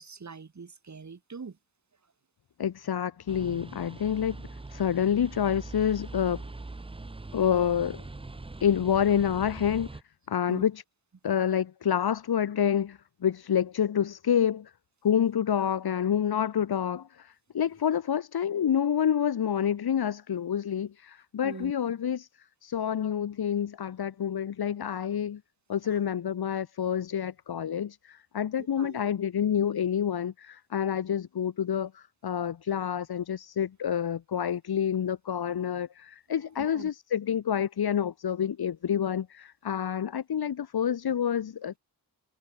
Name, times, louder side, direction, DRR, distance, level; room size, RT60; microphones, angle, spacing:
voice 1, 0.0-1.6 10.5-10.7 21.4-21.7 25.8-26.0 28.6-29.0 36.4-36.9, right 5 dB, 45° right, 1.8 m, -43 dB
voice 2, 2.6-4.4 4.7-6.4 7.3-8.0 8.6-9.9 10.3-10.8 11.2-14.7 15.0-22.3 22.6-25.4 25.7-41.8, left 8 dB, 65° left, 1.0 m, -28 dB
sound 1, 3.3-10.0, right 2 dB, 15° right, 0.7 m, -42 dB
wide cardioid pair, 70°, 40 cm